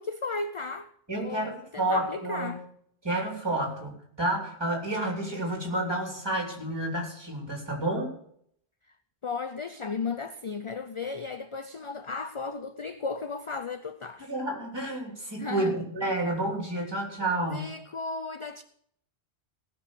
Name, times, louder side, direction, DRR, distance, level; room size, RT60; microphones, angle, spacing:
voice 1, 0.0-0.9 1.2-2.6 9.2-14.3 15.4-15.8 17.5-18.6, left 4 dB, 40° left, 0.5 m, -35 dB
voice 2, 1.1-2.5 3.0-8.1 14.2-17.7, right 1 dB, 25° right, 3.4 m, -30 dB
18.0 x 6.3 x 6.3 m
omnidirectional pair, 1.1 m